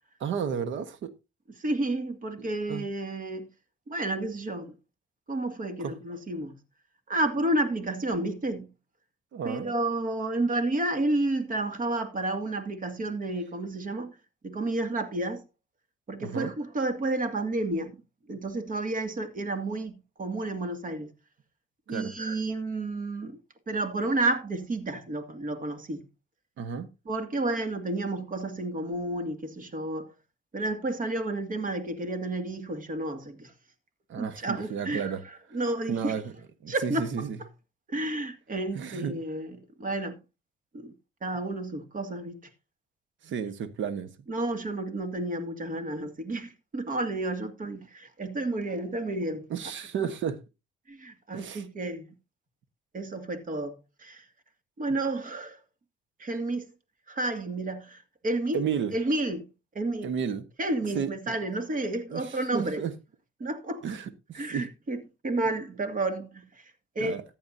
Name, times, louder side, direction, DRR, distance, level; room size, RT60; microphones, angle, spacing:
voice 1, 0.2-1.1 2.4-2.9 5.8-5.9 9.3-9.7 16.2-16.5 21.9-22.1 26.6-26.9 34.1-35.2 35.9-36.3 36.6-37.4 38.7-39.2 43.2-44.1 49.5-50.4 51.3-51.6 58.5-58.9 60.0-60.4 60.9-61.3 62.1-62.9 63.8-64.7 67.0-67.2, right 7 dB, 70° right, 1.4 m, -32 dB
voice 2, 1.6-3.5 3.9-4.8 5.3-6.6 7.1-8.7 9.4-14.2 14.4-15.4 16.1-18.0 18.3-19.9 20.2-21.1 21.9-23.4 23.7-26.0 27.1-30.1 30.5-33.5 34.2-36.2 36.7-37.1 37.9-40.2 40.7-40.9 41.2-42.4 44.3-49.5 50.0-50.1 50.9-52.1 52.9-54.3 54.8-55.6 56.2-56.7 57.1-58.6 58.9-59.4 59.7-60.1 60.6-62.9 63.4-63.8 64.3-65.0 65.2-66.7 67.0-67.2, right 2 dB, 45° right, 2.3 m, -31 dB
14.5 x 9.3 x 2.7 m
cardioid pair, 90°, 20 cm